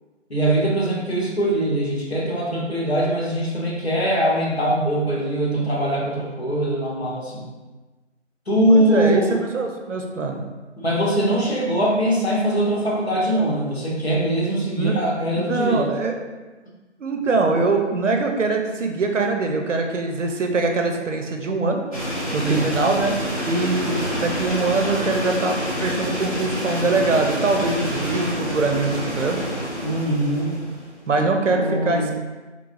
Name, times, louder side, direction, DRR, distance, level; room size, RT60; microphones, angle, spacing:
voice 1, 0.3-7.5 8.5-9.4 10.8-15.9 22.4-22.7 29.8-30.5 31.4-32.1, right 1 dB, 60° left, -4 dB, 1.0 m, -22 dB
voice 2, 8.7-10.4 14.8-15.0 15.3-16.2 17.0-21.8 22.3-23.1 23.5-29.4 31.1-32.1, right 3 dB, 80° right, 3 dB, 0.6 m, -23 dB
sound 1, 21.9-30.9, equal, 30° left, 0.9 m, -27 dB
3.2 x 3.2 x 2.5 m, 1.2 s
figure-of-eight pair, 175°, 36 cm